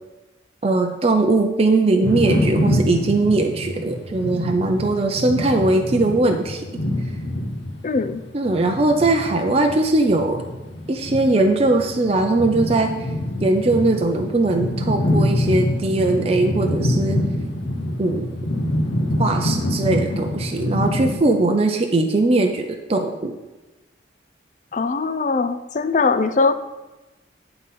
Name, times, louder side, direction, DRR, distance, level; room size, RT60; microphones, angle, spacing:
voice 1, 0.6-6.6 8.3-10.4 10.9-12.9 13.4-17.2 18.0-18.3 19.2-23.4, right 2 dB, 30° right, 3 dB, 0.5 m, -20 dB
sound 1, 2.0-21.1, left 1 dB, 70° left, 1.1 m, -25 dB
voice 2, 7.8-8.2 24.7-26.5, left 4 dB, 40° left, 11 dB, 0.4 m, -21 dB
9.9 x 3.9 x 5.6 m, 1.1 s
head